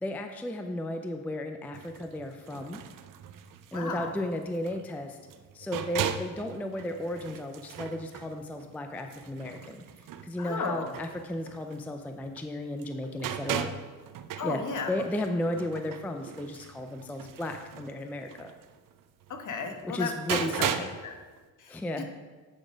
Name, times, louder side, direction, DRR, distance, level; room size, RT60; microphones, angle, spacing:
voice 1, 0.0-2.8 3.7-5.2 5.5-9.8 10.2-13.7 14.4-18.5 19.9-20.8 21.7-22.0, left 1 dB, 5° left, 5 dB, 0.4 m, -34 dB
sound 1, 1.7-12.5 12.8-21.0 21.4-21.5, right 9 dB, 55° right, 0.6 m, -38 dB
voice 2, 3.7-4.2 10.4-10.9 14.4-15.0 19.3-21.1 21.6-22.0, left 5 dB, 50° left, 4 dB, 1.1 m, -35 dB
9.8 x 4.1 x 5.0 m, 1.4 s
cardioid pair, 110°, 39 cm